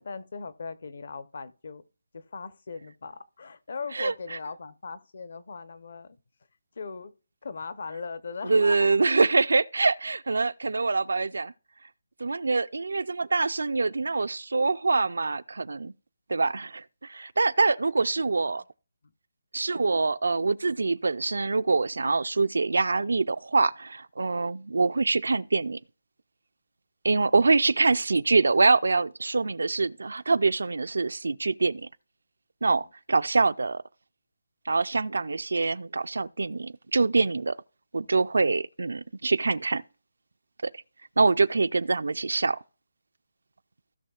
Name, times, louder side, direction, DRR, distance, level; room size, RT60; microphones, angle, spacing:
voice 1, 0.0-1.8 2.1-6.2 6.7-7.1 7.4-9.0 17.8-18.3 32.8-32.9, left 4 dB, 50° left, 0.7 m, -39 dB
voice 2, 8.5-11.5 12.2-15.9 16.3-18.6 19.5-25.8 27.0-31.9 32.6-33.8 34.7-37.6 37.9-39.8 40.6-40.8 41.2-42.6, right 3 dB, 80° right, 0.4 m, -25 dB
16.0 x 5.6 x 2.4 m
hypercardioid pair, 175°, 0 cm